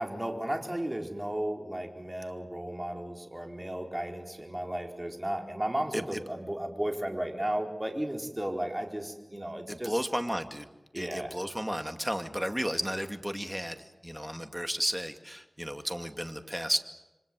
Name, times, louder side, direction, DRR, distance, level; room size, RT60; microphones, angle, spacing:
voice 1, 0.0-9.9 10.9-11.3, right 1 dB, 20° right, 2 dB, 4.6 m, -34 dB
voice 2, 9.7-10.7 11.0-16.8, equal, 5° right, 6 dB, 2.4 m, -33 dB
27.5 x 24.5 x 7.8 m, 1.1 s
wide cardioid pair, 45°, 0 cm